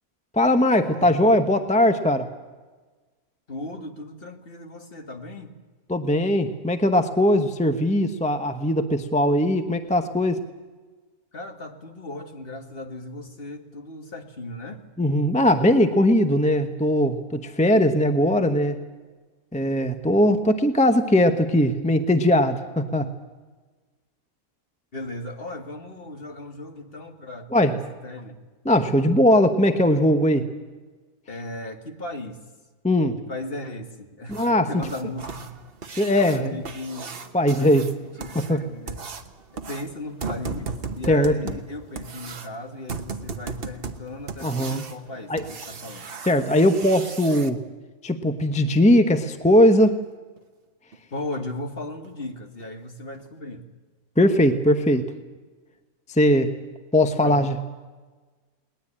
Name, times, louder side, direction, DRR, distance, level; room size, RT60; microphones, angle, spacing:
voice 1, 0.4-2.3 5.9-10.4 15.0-18.8 19.5-23.1 27.5-27.8 28.6-30.5 32.8-33.2 34.3-34.8 36.0-36.6 37.3-37.9 38.3-38.6 41.1-41.4 44.4-44.8 45.3-45.4 46.2-47.6 48.0-50.0 54.2-55.1 56.1-56.5 56.9-57.6, left 1 dB, 5° left, 8 dB, 0.8 m, -20 dB
voice 2, 0.9-1.3 3.5-5.5 11.3-14.8 24.9-28.4 31.3-32.4 33.2-35.5 36.3-37.1 37.6-39.0 39.7-46.1 51.1-53.7 57.2-57.4, left 1 dB, 40° left, 5 dB, 1.9 m, -36 dB
sound 1, 34.3-47.5 49.8-49.9 50.4-50.5 50.9-51.0 51.5-51.6 52.0-52.2 52.6-52.7 53.1-53.2, right 4 dB, 45° right, 1.3 m, -37 dB
20.0 x 20.0 x 8.7 m, 1.3 s
omnidirectional pair, 1.5 m